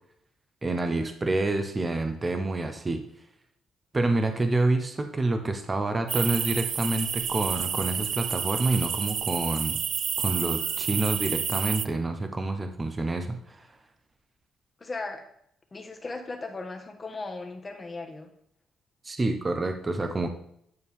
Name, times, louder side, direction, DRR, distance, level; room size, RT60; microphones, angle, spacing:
voice 1, 0.6-3.1 3.9-9.8 10.2-13.7 19.0-20.3, right 2 dB, 25° right, 6 dB, 0.8 m, -28 dB
sound 1, 6.1-11.9, right 8 dB, 60° right, 0.3 m, -30 dB
voice 2, 14.8-15.2 15.7-18.3, left 3 dB, 30° left, 4 dB, 1.4 m, -37 dB
9.5 x 4.4 x 3.5 m, 0.70 s
cardioid pair, 90°, 0 cm